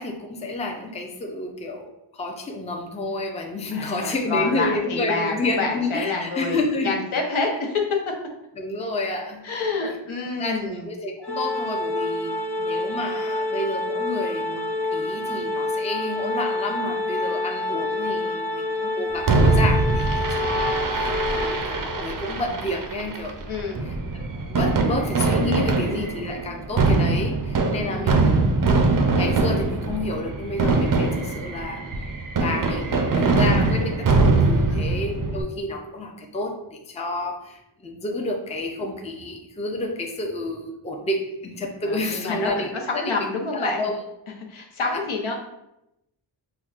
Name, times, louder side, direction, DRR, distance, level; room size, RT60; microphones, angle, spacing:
voice 1, 0.0-1.9 2.1-7.0 8.6-9.4 10.4-14.6 14.9-23.5 23.8-28.4 29.1-32.1 32.4-43.1 43.5-43.9 44.9-45.0, left 2 dB, 15° left, 2 dB, 0.4 m, -30 dB
voice 2, 3.7-8.1 9.4-10.9 23.5-23.9 27.9-28.2 34.7-35.0 41.8-43.9 44.5-45.3, left 3 dB, 85° left, 0 dB, 0.8 m, -28 dB
Organ, 11.2-22.1, left 2 dB, 55° left, 0.8 m, -27 dB
Fireworks, 19.3-35.4, right 3 dB, 45° right, 0.4 m, -22 dB
5.5 x 2.1 x 2.4 m, 0.86 s
wide cardioid pair, 110°, 47 cm